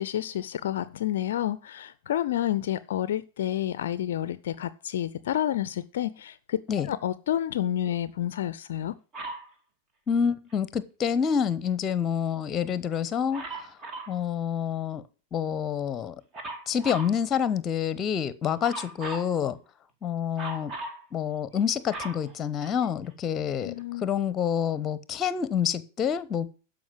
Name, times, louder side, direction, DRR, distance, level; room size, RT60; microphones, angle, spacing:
voice 1, 0.0-6.6 6.8-8.9 23.6-24.0, left 11 dB, 60° left, 0.5 m, -29 dB
Dog, 9.1-9.5 13.3-14.2 16.3-17.2 18.6-19.3 20.4-21.0 21.5-23.1 23.8-23.9, right 2 dB, 30° right, 2.7 m, -38 dB
voice 2, 10.1-13.7 14.1-15.0 15.3-16.2 16.7-19.6 20.0-20.7 21.1-26.5, left 8 dB, 25° left, 1.0 m, -28 dB
12.5 x 5.2 x 7.7 m
figure-of-eight pair, 90°, 0 cm